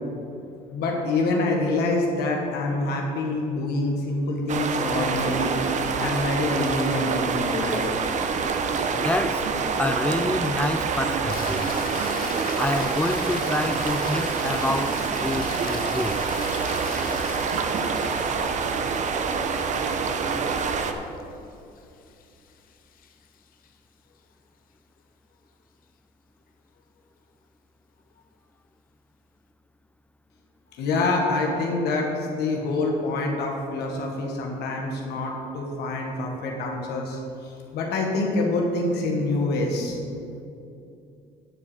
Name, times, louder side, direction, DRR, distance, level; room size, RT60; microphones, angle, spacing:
voice 1, 0.4-7.9 30.8-40.0, left 2 dB, 75° left, 1.5 m, -26 dB
sound 1, 4.5-20.9, right 5 dB, 45° right, 0.8 m, -26 dB
voice 2, 8.9-11.7 12.6-16.2, left 2 dB, 10° left, 0.4 m, -28 dB
sound 2, 11.3-23.7 28.2-28.3, left 8 dB, 55° left, 0.8 m, -41 dB
10.5 x 4.9 x 6.9 m
cardioid pair, 110°, 17 cm